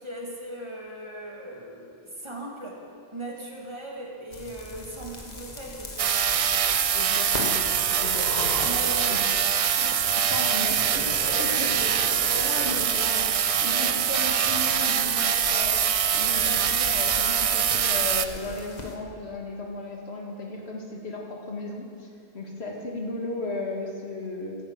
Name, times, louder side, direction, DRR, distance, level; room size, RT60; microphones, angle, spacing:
voice 1, 0.0-2.8 3.1-6.2 8.6-9.2 9.8-10.0, right 1 dB, 25° right, -2 dB, 1.9 m, -38 dB
sound 1, 4.3-19.0, left 2 dB, 40° left, 1.4 m, -40 dB
sound 2, 6.0-18.3, right 8 dB, 60° right, 0.3 m, -24 dB
voice 2, 6.9-7.6 8.0-8.6 9.1-9.2 10.3-15.8 16.1-22.1 22.3-24.6, left 2 dB, 80° left, -1 dB, 2.0 m, -35 dB
11.0 x 9.1 x 7.9 m, 2.4 s
omnidirectional pair, 1.1 m